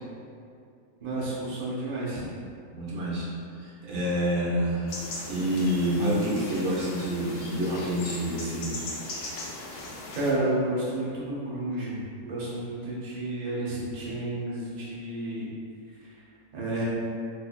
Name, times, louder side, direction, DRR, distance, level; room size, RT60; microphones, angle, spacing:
voice 1, 1.0-2.3 10.1-15.5 16.5-16.8, right 1 dB, 45° right, -7 dB, 0.5 m, -31 dB
voice 2, 2.7-3.3 3.6-5.0 5.3-8.8, equal, 70° right, -6 dB, 1.1 m, -28 dB
sound 1, 4.9-10.3, left 2 dB, 75° left, 0.5 m, -39 dB
3.2 x 3.1 x 2.3 m, 2.4 s
omnidirectional pair, 1.6 m